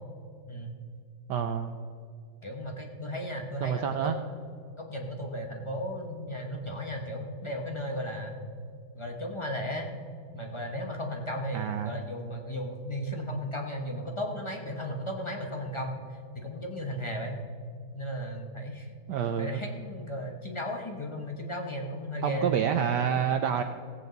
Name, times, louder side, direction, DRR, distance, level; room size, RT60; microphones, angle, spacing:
voice 1, 1.3-1.8 3.6-4.2 11.5-11.9 19.1-19.6 22.2-23.6, right 8 dB, 80° right, 7 dB, 0.9 m, -28 dB
voice 2, 2.4-4.0 4.8-8.3 8.9-9.9 10.3-17.4 17.9-18.9 19.4-22.6, equal, 40° left, 2 dB, 0.4 m, -35 dB
16.5 x 8.4 x 4.0 m, 2.3 s
omnidirectional pair, 2.4 m